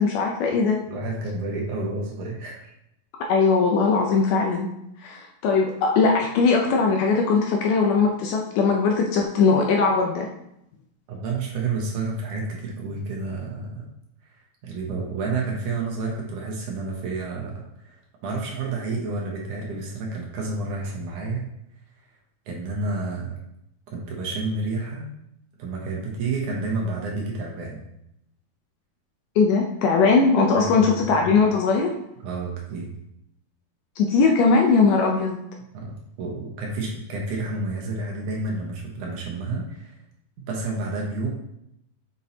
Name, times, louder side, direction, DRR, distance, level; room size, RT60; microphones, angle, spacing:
voice 1, 0.0-0.8 3.3-4.7 5.0-10.3 29.4-31.9 34.0-35.4, left 4 dB, 75° left, 1 dB, 2.0 m, -20 dB
voice 2, 0.9-2.7 11.1-13.8 14.6-21.4 22.5-23.3 23.9-25.1 25.6-27.8 30.5-31.2 32.2-32.9 35.7-40.0 40.5-41.3, right 3 dB, 65° right, -2 dB, 2.4 m, -30 dB
7.2 x 5.4 x 2.8 m, 0.80 s
omnidirectional pair, 4.1 m